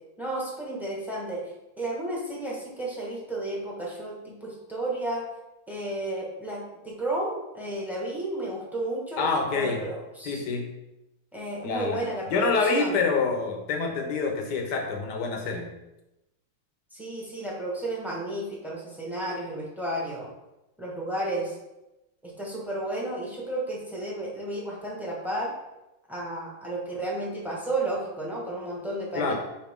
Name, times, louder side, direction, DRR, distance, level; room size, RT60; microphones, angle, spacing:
voice 1, 0.2-1.4 1.8-5.2 5.7-10.4 11.3-13.0 16.9-20.3 20.8-21.6 22.2-25.5 26.1-29.3, right 1 dB, ahead, -3 dB, 1.2 m, -32 dB
voice 2, 9.2-9.8 10.2-10.6 11.6-15.7 29.2-29.3, left 4 dB, 60° left, 3 dB, 1.5 m, -27 dB
5.8 x 4.8 x 3.7 m, 0.95 s
omnidirectional pair, 2.2 m